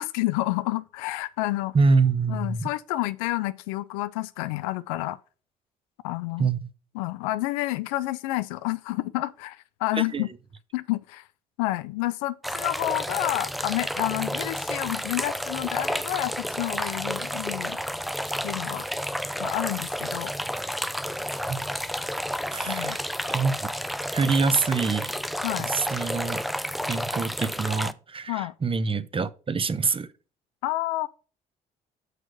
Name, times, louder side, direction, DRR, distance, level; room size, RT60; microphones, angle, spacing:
voice 1, 0.0-1.7 2.3-5.2 6.0-6.5 6.9-10.3 10.7-11.3 11.6-17.8 18.4-18.9 19.4-20.3 22.7-23.0 25.4-25.7 28.3-28.5 30.6-31.1, left 18 dB, 85° left, 0.4 m, -29 dB
voice 2, 1.7-2.7 6.4-6.7 10.0-10.3 21.5-21.7 22.5-23.0 23.3-23.7 24.1-25.1 25.6-26.4 26.9-30.1, right 4 dB, 30° right, 0.7 m, -25 dB
sound 1, 12.4-27.9, equal, ahead, 0.5 m, -31 dB
6.3 x 4.9 x 6.0 m
hypercardioid pair, 50°, 18 cm